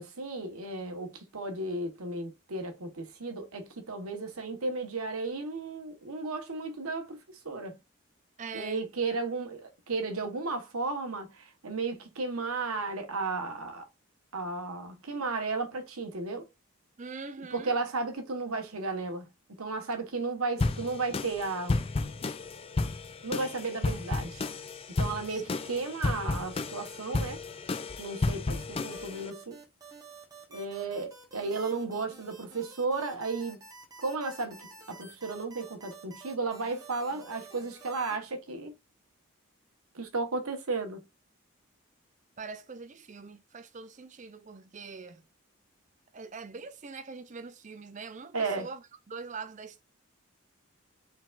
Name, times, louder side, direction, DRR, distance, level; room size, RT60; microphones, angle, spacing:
voice 1, 0.0-7.2 7.4-7.8 8.5-13.9 14.3-16.5 17.5-19.3 19.6-21.8 23.2-24.4 24.9-27.4 28.0-29.6 30.5-33.6 34.0-38.7 39.9-41.0 48.3-48.7, right 3 dB, 85° right, 1.2 m, -34 dB
voice 2, 8.4-8.9 17.0-17.8 25.3-25.6 42.4-45.2 46.1-49.8, right 4 dB, 35° right, 0.4 m, -43 dB
sound 1, 20.6-29.3, left 3 dB, 25° left, 0.3 m, -32 dB
sound 2, 28.5-38.2, right 3 dB, 15° right, 1.1 m, -50 dB
4.4 x 3.9 x 2.4 m
head